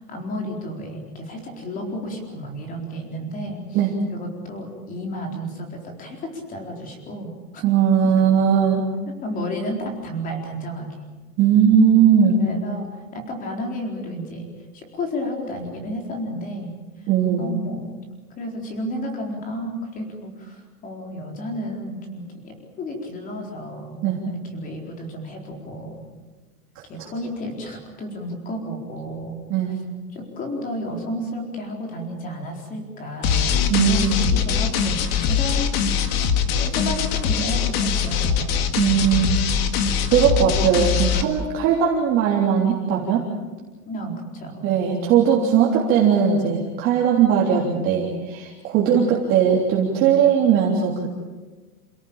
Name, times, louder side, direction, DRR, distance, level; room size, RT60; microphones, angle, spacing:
voice 1, 0.0-3.6 4.1-7.6 9.1-10.9 12.4-16.8 17.4-18.0 18.4-26.1 26.8-29.4 30.1-35.0 35.3-35.8 36.6-38.6 43.9-44.7 48.8-49.1, equal, 15° left, 2 dB, 4.3 m, -32 dB
voice 2, 7.6-8.8 11.4-12.4 17.1-17.5 24.0-24.2 29.5-29.7 33.7-34.3 38.8-39.4 40.1-43.2 44.6-51.1, right 8 dB, 25° right, -3 dB, 3.4 m, -19 dB
sound 1, 33.2-41.2, left 7 dB, 40° left, 2.0 m, -22 dB
28.5 x 17.5 x 8.9 m, 1.3 s
supercardioid pair, 175°, 47 cm